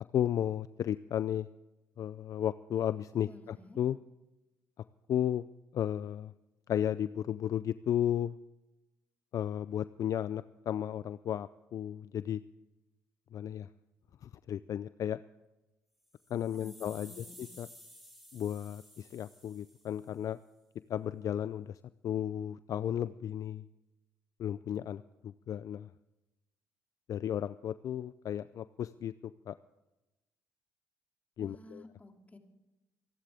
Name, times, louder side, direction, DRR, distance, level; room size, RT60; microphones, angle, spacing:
voice 1, 0.0-1.5 2.0-4.0 5.1-5.4 5.7-6.3 6.7-8.3 9.3-12.4 13.3-13.7 14.2-15.2 16.3-17.7 18.3-20.4 20.9-21.8 22.0-23.6 24.4-25.9 27.1-29.5 31.4-31.8, left 10 dB, 55° left, 15 dB, 0.5 m, -34 dB
voice 2, 3.2-3.8 16.5-17.5 31.4-32.4, left 2 dB, 25° left, 3 dB, 3.0 m, -53 dB
sound 1, 16.0-20.2, equal, 5° right, 4.5 m, -55 dB
26.0 x 11.5 x 3.6 m, 1.0 s
supercardioid pair, 65°, 7 cm